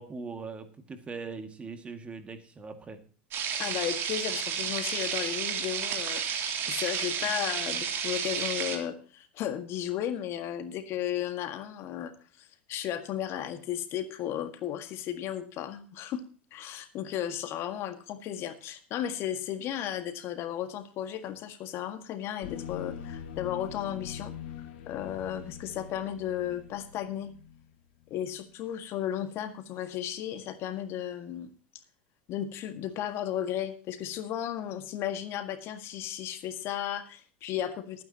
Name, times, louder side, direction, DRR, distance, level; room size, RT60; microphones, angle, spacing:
voice 1, 0.0-3.0, right 4 dB, 20° right, 8 dB, 2.0 m, -41 dB
sound 1, 3.3-8.8, right 7 dB, 45° right, 2.9 m, -32 dB
voice 2, 3.6-12.1 12.4-16.2 16.5-24.3 24.9-27.3 28.1-31.5 32.3-38.0, left 11 dB, 45° left, 9 dB, 1.7 m, -34 dB
sound 2, 22.4-27.7, left 8 dB, 75° left, 2.2 m, -43 dB
19.5 x 9.5 x 2.9 m, 0.39 s
hypercardioid pair, 105°, 6 cm